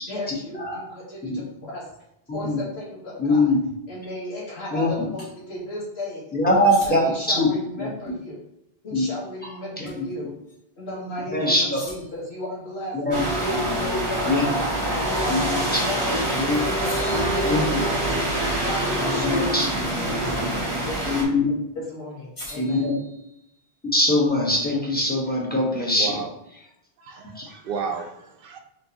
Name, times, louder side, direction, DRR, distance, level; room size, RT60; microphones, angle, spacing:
voice 1, 0.1-1.8 2.3-3.5 3.9-6.2 6.5-8.4 8.8-10.3 10.8-13.0 13.4-14.6 15.0-16.3 16.6-21.4 21.7-22.9, left 1 dB, 90° left, -5 dB, 1.6 m, -34 dB
voice 2, 2.3-2.6 3.2-3.6 4.7-5.1 6.3-7.0 7.3-7.5 7.8-7.9 8.9-9.0 9.8-10.0 11.3-11.8 12.9-13.3 14.3-14.5 15.3-15.6 16.3-16.6 17.4-17.8 19.3-19.7 21.1-21.5 22.5-23.0 23.9-26.2 27.4-27.5, left 1 dB, 10° left, -3 dB, 0.9 m, -22 dB
sound 1, 5.2-5.3 6.6-7.3 9.9-10.1 10.5-10.6 11.7-12.3 15.6-16.1 16.8-18.2 20.5-20.9 22.4-23.7, equal, 60° left, 1.3 m, -43 dB
sound 2, 13.1-21.2, right 1 dB, 25° right, 0.9 m, -25 dB
voice 3, 26.0-26.3 27.0-28.6, right 6 dB, 65° right, 4 dB, 0.7 m, -32 dB
4.2 x 3.6 x 2.8 m, 0.81 s
omnidirectional pair, 1.0 m